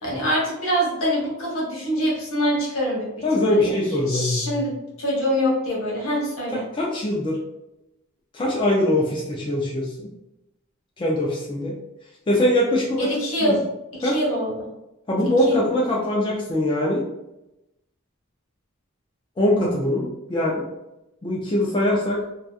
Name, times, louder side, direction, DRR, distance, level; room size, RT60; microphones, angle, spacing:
voice 1, 0.0-3.7 4.1-6.6 13.0-13.6 13.9-14.7 15.5-15.6, equal, 70° left, -4 dB, 1.1 m, -24 dB
voice 2, 3.2-4.6 6.7-7.4 8.3-10.1 11.0-11.7 12.3-13.1 13.4-13.6 14.0-14.2 15.1-17.0 19.4-20.7 21.2-22.2, left 1 dB, 25° left, -4 dB, 0.4 m, -22 dB
2.7 x 2.2 x 2.3 m, 0.92 s
head